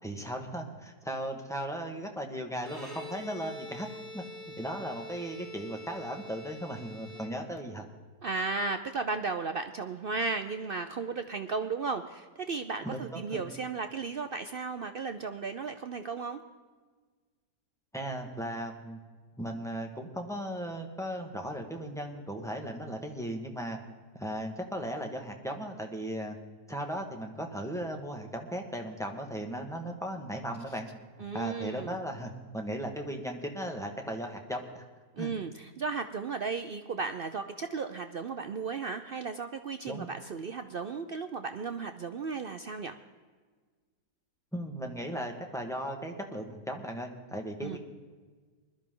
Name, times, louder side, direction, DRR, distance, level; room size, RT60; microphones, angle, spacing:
voice 1, 0.0-3.9 4.1-4.2 4.6-7.8 12.8-13.4 17.9-19.0 19.4-23.8 24.1-26.3 26.7-30.9 31.3-34.8 35.2-35.3 39.9-40.1 44.5-47.8, equal, ahead, 2 dB, 1.5 m, -37 dB
Bowed string instrument, 2.6-7.8, left 1 dB, 25° right, 4.7 m, -45 dB
voice 2, 8.2-16.4 31.2-32.0 35.2-43.0 47.6-47.8, right 4 dB, 75° right, 8 dB, 0.5 m, -35 dB
21.0 x 12.5 x 3.8 m, 1.5 s
omnidirectional pair, 1.7 m